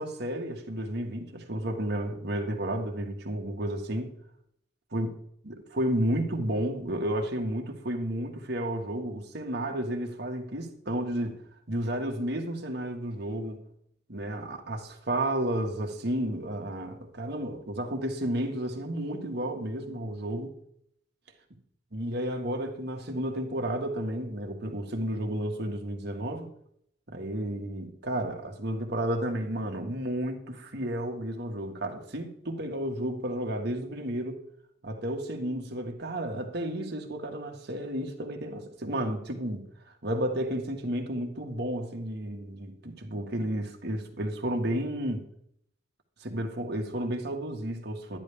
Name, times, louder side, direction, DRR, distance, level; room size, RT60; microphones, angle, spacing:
voice 1, 0.0-4.1 4.9-5.1 5.4-11.4 11.7-13.6 14.1-20.5 21.9-26.5 27.1-34.4 34.8-39.6 40.0-45.3 46.2-48.2, right 1 dB, 60° right, 3 dB, 1.6 m, -32 dB
11.0 x 10.5 x 3.4 m, 0.69 s
head